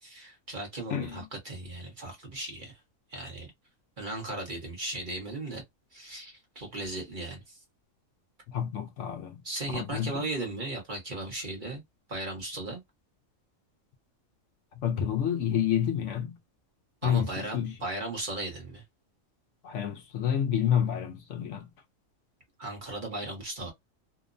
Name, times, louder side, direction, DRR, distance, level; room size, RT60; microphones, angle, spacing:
voice 1, 0.0-2.8 3.1-3.5 4.0-5.6 5.9-7.6 9.4-11.8 12.1-12.8 17.0-18.8 22.6-23.7, right 2 dB, 40° right, 1.1 m, -37 dB
voice 2, 0.9-1.3 8.5-9.4 9.7-10.2 14.7-16.4 17.0-17.7 19.6-21.7, left 9 dB, 65° left, 0.9 m, -29 dB
2.9 x 2.1 x 2.4 m
omnidirectional pair, 1.4 m